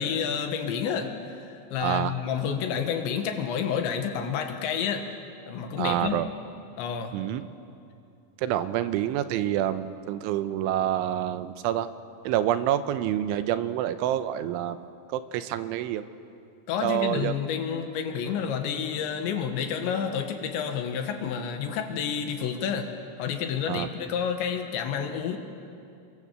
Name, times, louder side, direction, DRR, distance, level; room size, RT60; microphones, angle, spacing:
voice 1, 0.0-5.1 5.5-6.2 6.8-7.2 16.7-22.9 23.2-25.4, left 7 dB, 70° left, 5 dB, 3.7 m, -29 dB
voice 2, 1.8-2.1 5.8-6.3 7.1-7.4 8.4-11.9 12.3-14.9 15.1-16.1 16.8-17.3 23.7-23.9, right 12 dB, 80° right, 11 dB, 3.2 m, -27 dB
30.0 x 23.0 x 7.5 m, 2.5 s
omnidirectional pair, 5.6 m